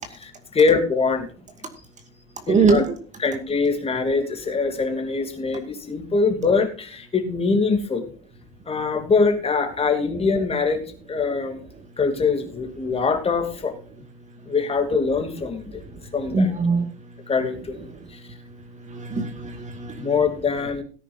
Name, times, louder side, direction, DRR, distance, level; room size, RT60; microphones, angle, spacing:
voice 1, 0.1-1.3 2.5-2.8 3.2-8.0 8.7-10.8 11.1-11.6 12.0-13.7 14.4-15.7 16.1-16.5 17.3-17.9 20.0-20.8, left 4 dB, 20° left, 6 dB, 2.8 m, -23 dB
voice 2, 2.5-2.8 16.3-16.9 18.9-20.1, right 4 dB, 25° right, 7 dB, 2.1 m, -21 dB
17.5 x 10.0 x 2.6 m, 0.40 s
cardioid pair, 135°, 29 cm